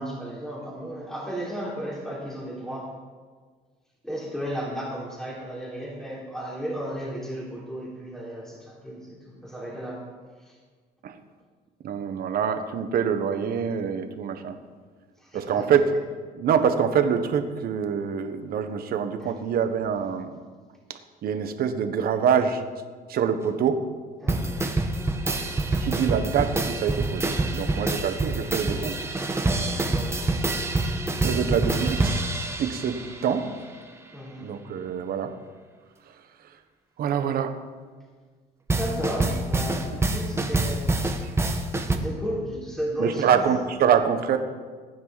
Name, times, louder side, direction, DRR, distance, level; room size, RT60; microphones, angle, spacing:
voice 1, 0.0-2.9 4.0-10.1 10.4-10.6 15.2-15.8 19.2-19.3 24.2-24.7 29.6-30.2 34.1-34.5 38.7-40.9 41.9-43.4, equal, 5° left, -5 dB, 3.6 m, -34 dB
voice 2, 11.8-14.6 15.3-15.9 16.3-20.4 21.2-22.6 23.1-23.8 25.8-29.0 29.3-29.5 31.2-32.2 32.6-33.5 34.4-35.3 37.0-37.5 39.9-40.0 41.2-41.3 43.0-44.4, right 7 dB, 60° right, 8 dB, 1.3 m, -25 dB
sound 1, 24.3-33.4 38.7-42.0, right 2 dB, 15° right, 1.3 m, -26 dB
20.0 x 9.4 x 4.2 m, 1.5 s
cardioid pair, 110°, 17 cm